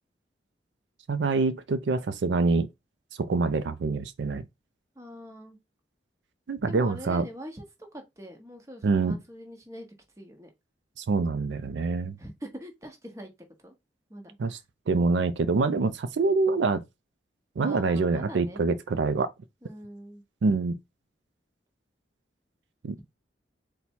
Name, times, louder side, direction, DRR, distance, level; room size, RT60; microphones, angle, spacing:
voice 1, 1.1-2.7 3.2-4.4 6.5-7.2 8.8-9.2 11.0-12.2 14.4-14.6 14.9-16.8 17.6-19.3 20.4-20.8 22.8-23.0, right 4 dB, 80° right, 0.4 m, -25 dB
voice 2, 4.9-5.6 6.7-7.6 7.9-9.9 10.2-10.5 12.2-13.3 13.6-13.7 14.1-14.6 17.6-18.6 19.6-20.2, equal, 15° right, 0.9 m, -43 dB
4.1 x 2.2 x 4.4 m
head